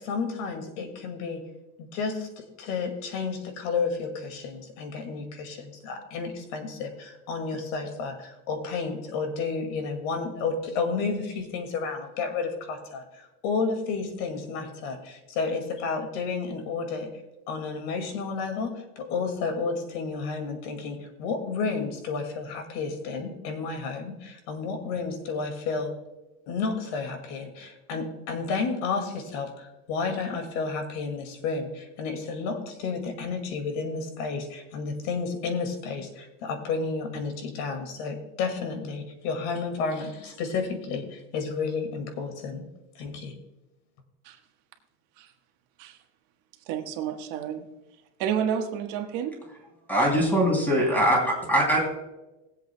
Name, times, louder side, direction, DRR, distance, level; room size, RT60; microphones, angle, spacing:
voice 1, 0.0-1.4 1.8-17.1 17.5-25.9 26.5-42.6 43.0-43.3, left 4 dB, 75° left, 6 dB, 2.1 m, -31 dB
voice 2, 46.7-47.7 48.2-49.4, right 8 dB, 65° right, 4 dB, 1.3 m, -30 dB
voice 3, 49.9-51.8, equal, 5° left, -1 dB, 2.8 m, -22 dB
20.5 x 7.8 x 2.2 m, 1.0 s
cardioid pair, 155°, 34 cm